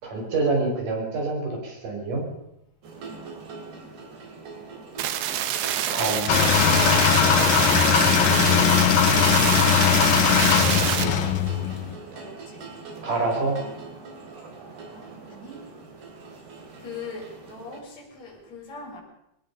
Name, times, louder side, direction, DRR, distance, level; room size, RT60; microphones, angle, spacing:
voice 1, 0.0-2.2 5.9-6.4 7.1-7.4 9.3-9.6 10.1-10.3 13.0-13.6, right 3 dB, 50° right, 0 dB, 6.7 m, -27 dB
sound 1, 2.8-17.8, right 4 dB, 65° right, 5.3 m, -41 dB
sound 2, 5.0-11.0, right 10 dB, 85° right, 3.5 m, -26 dB
sound 3, 6.3-12.0, left 8 dB, 60° left, 2.3 m, -20 dB
voice 2, 12.1-12.7 14.9-15.6 16.8-19.0, left 4 dB, 40° left, -3 dB, 7.3 m, -41 dB
21.0 x 18.5 x 6.9 m, 0.82 s
omnidirectional pair, 5.0 m